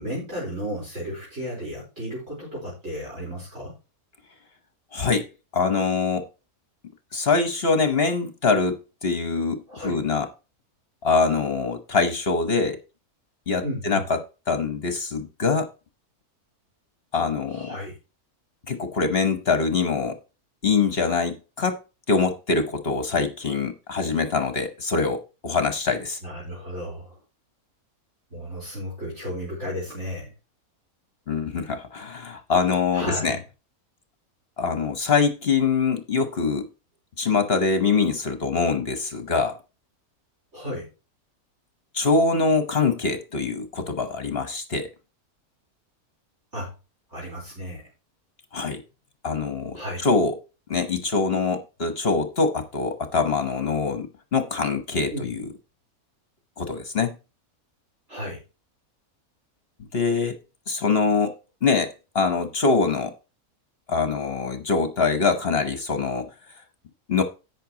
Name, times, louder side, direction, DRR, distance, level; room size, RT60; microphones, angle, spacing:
voice 1, 0.0-3.8 9.7-10.0 13.6-14.0 17.5-18.0 26.2-27.2 28.3-30.3 32.9-33.4 40.5-40.9 46.5-46.7 47.1-47.9 49.7-50.1 55.1-55.3 58.1-58.4, equal, 50° right, 4.4 m, -33 dB
voice 2, 4.9-5.3 5.5-6.3 7.1-10.3 11.0-12.8 13.5-14.2 14.5-15.7 17.1-17.8 18.7-20.2 20.6-21.8 22.1-26.2 31.3-33.4 34.6-36.7 37.2-39.6 41.9-44.9 48.5-48.8 49.2-50.3 50.7-55.4 56.6-57.2 59.9-60.4 60.7-61.3 61.6-63.1 63.9-66.3 67.1-67.2, left 4 dB, 45° left, 1.2 m, -24 dB
11.0 x 8.7 x 2.9 m
omnidirectional pair, 1.6 m